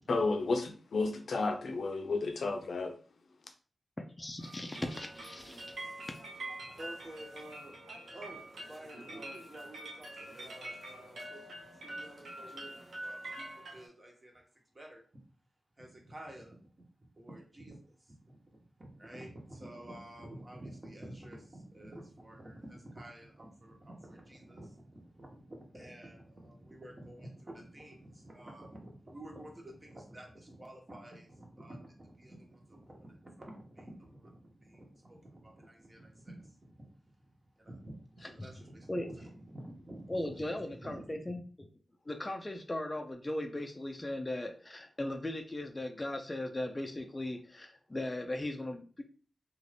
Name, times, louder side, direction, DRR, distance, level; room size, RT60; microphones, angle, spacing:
voice 1, 0.1-2.9, left 3 dB, 75° left, 0.5 m, -32 dB
voice 2, 4.0-5.6 38.4-38.5 38.9-39.1 40.1-41.7 42.1-49.0, left 1 dB, 25° left, 0.4 m, -38 dB
sound 1, 4.4-13.9, right 1 dB, 80° right, 0.8 m, -45 dB
voice 3, 6.6-7.8 8.1-11.5 11.7-14.4 14.7-15.0 15.8-16.6 17.2-37.0 37.6-41.1, right 1 dB, 35° right, 1.0 m, -50 dB
2.5 x 2.4 x 3.3 m
cardioid pair, 70°, 0 cm